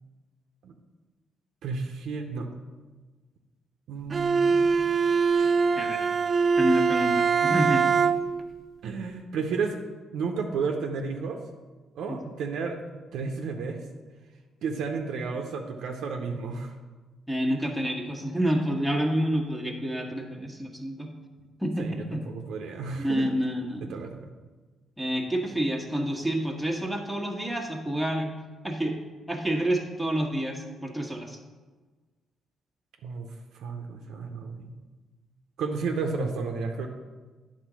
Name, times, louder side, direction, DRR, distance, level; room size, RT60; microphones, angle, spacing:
voice 1, 1.6-2.5 3.9-4.7 5.4-5.5 7.5-7.6 8.8-9.8 10.1-11.4 11.9-12.8 13.1-13.8 14.6-16.7 21.8-23.3 23.8-24.3 33.0-34.7 35.6-36.9, right 4 dB, 80° right, 3 dB, 0.6 m, -32 dB
Bowed string instrument, 4.1-8.5, right 5 dB, 40° right, 0.3 m, -23 dB
voice 2, 6.6-7.8 12.1-12.2 17.3-21.1 21.6-22.2 23.0-24.0 25.0-28.3 28.6-29.0 29.3-31.4, equal, ahead, 1 dB, 1.3 m, -28 dB
9.1 x 3.9 x 6.2 m, 1.3 s
cardioid pair, 90°, 0 cm